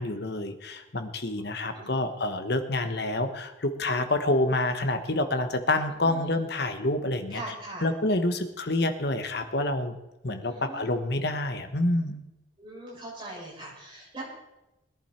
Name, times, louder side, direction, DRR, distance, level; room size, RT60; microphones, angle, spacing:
voice 1, 0.0-7.4 7.8-10.0 10.2-12.2, left 2 dB, 55° left, 8 dB, 1.2 m, -28 dB
voice 2, 1.7-2.2 6.0-6.4 7.3-7.9 10.4-10.9 12.6-14.3, right 2 dB, 25° right, -5 dB, 6.7 m, -41 dB
21.0 x 11.0 x 4.4 m, 0.96 s
head